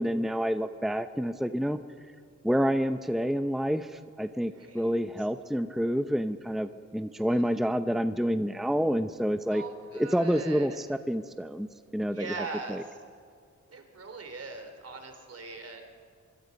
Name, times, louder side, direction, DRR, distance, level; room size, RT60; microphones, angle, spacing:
voice 1, 0.0-1.8 2.4-9.6 9.9-11.7 11.9-12.3 12.7-12.8, equal, ahead, 9 dB, 0.7 m, -28 dB
voice 2, 4.6-4.9 5.2-5.3 7.3-7.5 9.5-10.7 12.1-13.0 13.7-15.9, right 4 dB, 55° right, 5 dB, 3.4 m, -41 dB
25.5 x 24.5 x 5.3 m, 2.2 s
cardioid pair, 80°, 29 cm